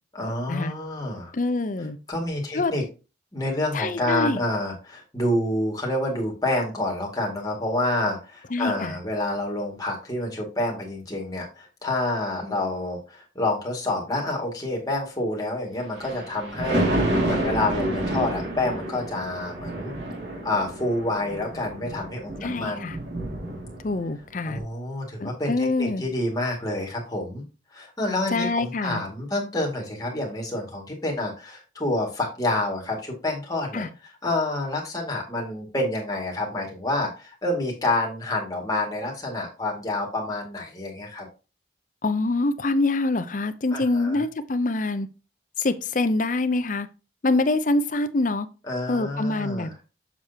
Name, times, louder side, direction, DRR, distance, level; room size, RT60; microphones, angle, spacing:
voice 1, 0.1-1.3 2.1-2.8 3.3-19.9 20.4-22.9 24.5-27.4 27.7-33.9 34.2-41.3 43.7-44.2 48.7-49.7, left 1 dB, 20° left, -1 dB, 2.1 m, -28 dB
voice 2, 1.3-2.0 2.5-2.7 3.7-4.4 8.5-9.0 22.4-23.0 23.8-24.6 25.2-26.0 28.3-29.0 33.7-33.9 42.0-45.1 45.6-46.9 47.2-48.5 48.9-49.7, left 2 dB, 45° left, 11 dB, 0.6 m, -25 dB
Thunder, 15.8-24.2 24.6-24.7, right 1 dB, 70° right, 2.3 m, -29 dB
7.0 x 6.3 x 2.8 m, 0.31 s
head